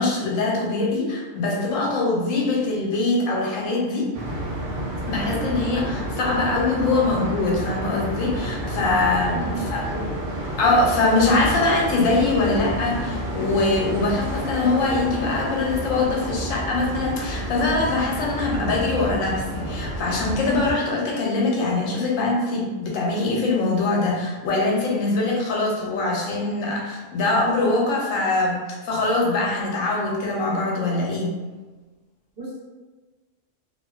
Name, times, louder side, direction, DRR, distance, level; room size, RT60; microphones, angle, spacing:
voice 1, 0.0-4.1 5.1-9.9 10.6-31.3, left 2 dB, 85° left, -2 dB, 1.0 m, -23 dB
sound 1, 4.1-20.7, right 1 dB, 65° right, 0.5 m, -30 dB
voice 2, 9.4-10.2 32.4-32.6, right 2 dB, 50° right, -9 dB, 1.0 m, -34 dB
2.6 x 2.1 x 2.3 m, 1.3 s
omnidirectional pair, 1.3 m